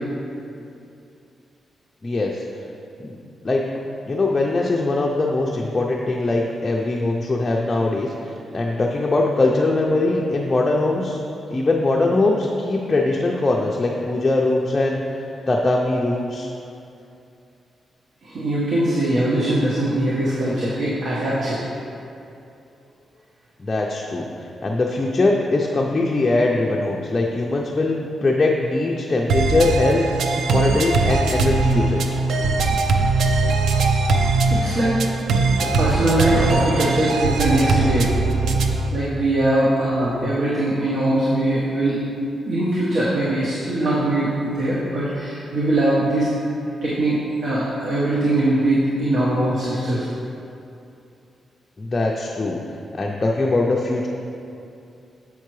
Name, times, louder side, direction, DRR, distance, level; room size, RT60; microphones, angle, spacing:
voice 1, 2.0-2.4 3.0-3.2 3.4-3.7 4.1-11.2 11.5-16.5 23.6-32.0 40.2-40.3 51.8-52.6 52.9-54.1, left 2 dB, 25° left, -2 dB, 0.4 m, -21 dB
voice 2, 18.2-21.6 34.5-35.0 35.6-38.1 38.9-42.1 42.4-46.3 46.8-50.1, right 1 dB, 65° right, -8 dB, 1.1 m, -21 dB
sound 1, 29.3-38.9, right 3 dB, 80° right, 0.4 m, -20 dB
7.4 x 5.6 x 3.1 m, 2.7 s
cardioid pair, 120°, 0 cm